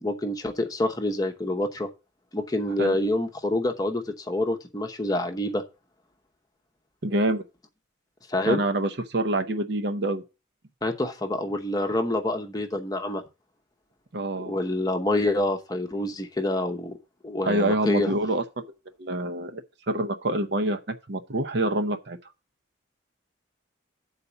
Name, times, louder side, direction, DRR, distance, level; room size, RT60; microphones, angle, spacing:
voice 1, 0.0-1.9 2.3-5.6 8.3-8.6 10.8-13.2 14.4-16.9 17.2-18.1, left 1 dB, 20° left, 0.8 m, -27 dB
voice 2, 7.0-7.4 8.4-10.2 14.1-14.5 17.5-18.7 19.0-22.2, right 1 dB, 55° right, 0.7 m, -26 dB
8.2 x 4.1 x 6.9 m
head